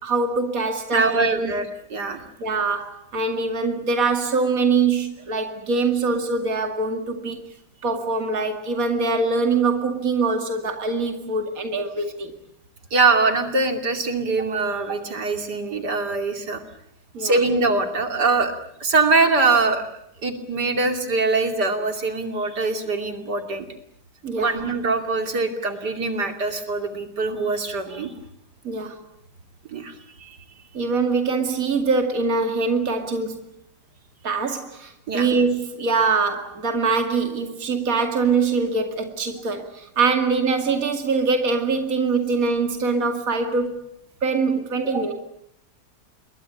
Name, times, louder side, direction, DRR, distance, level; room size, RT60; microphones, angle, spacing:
voice 1, 0.0-1.5 2.4-7.4 7.8-12.3 17.1-17.4 24.2-24.6 28.6-29.0 30.7-33.4 34.2-43.8 44.2-45.1, right 4 dB, 55° right, 5 dB, 2.8 m, -23 dB
voice 2, 0.9-2.2 12.9-16.6 17.2-19.8 20.2-23.6 24.3-28.1 29.7-30.4 35.1-35.3, right 3 dB, 80° right, 6 dB, 3.4 m, -23 dB
27.5 x 22.5 x 8.5 m, 0.73 s
omnidirectional pair, 1.8 m